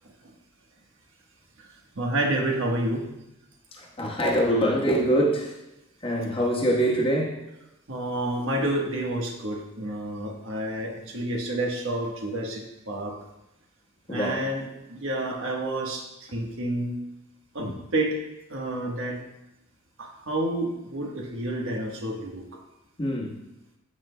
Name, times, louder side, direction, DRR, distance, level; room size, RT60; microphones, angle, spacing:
voice 1, 1.9-3.1 6.0-6.1 7.9-13.2 14.1-17.0 17.5-18.2 18.5-19.2 20.0-22.4, right 1 dB, 65° right, 0 dB, 1.3 m, -29 dB
voice 2, 3.8-5.5 6.0-7.4 14.1-14.4 17.6-17.7 23.0-23.3, equal, 25° left, -2 dB, 1.2 m, -24 dB
14.0 x 5.5 x 2.2 m, 0.90 s
head